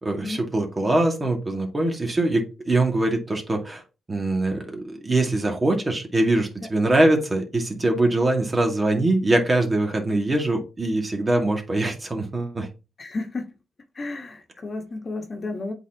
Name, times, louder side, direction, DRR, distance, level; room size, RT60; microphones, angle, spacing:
voice 1, 0.0-3.8 4.1-12.7, right 2 dB, 25° right, 2.1 m, -23 dB
voice 2, 13.0-13.5 13.9-15.7, left 3 dB, 40° left, 1.5 m, -32 dB
8.0 x 4.2 x 2.9 m
cardioid pair, 80°, 0 cm